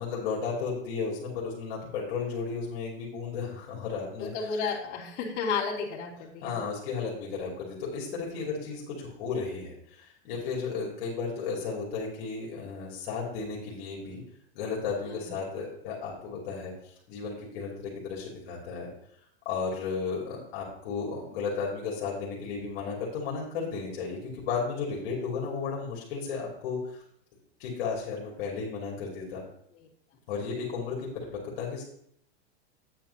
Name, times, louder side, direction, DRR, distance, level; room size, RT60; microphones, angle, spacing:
voice 1, 0.0-4.3 6.4-14.2 14.5-18.9 19.4-27.0 27.6-29.4 30.3-31.8, left 5 dB, 60° left, -3 dB, 2.7 m, -34 dB
voice 2, 4.3-6.7 8.3-8.5 15.0-15.3 29.7-29.9, left 5 dB, 40° left, -7 dB, 3.1 m, -33 dB
9.1 x 8.9 x 2.8 m, 0.69 s
supercardioid pair, 145°, 34 cm